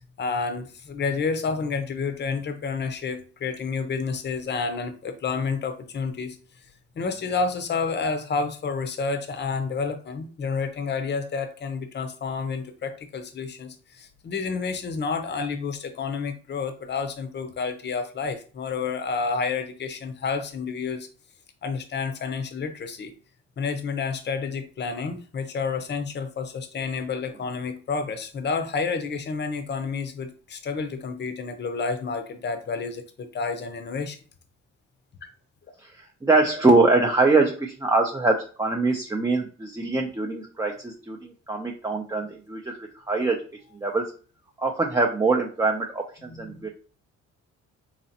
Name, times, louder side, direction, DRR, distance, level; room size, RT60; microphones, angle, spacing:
voice 1, 0.0-6.4 7.0-21.1 21.6-23.1 23.6-34.2 46.3-46.7, left 4 dB, 35° left, 6 dB, 0.7 m, -30 dB
voice 2, 35.8-43.4 43.7-44.1 44.6-46.7, right 3 dB, 10° right, 1 dB, 0.6 m, -23 dB
4.0 x 3.0 x 2.8 m, 0.38 s
cardioid pair, 90°, 30 cm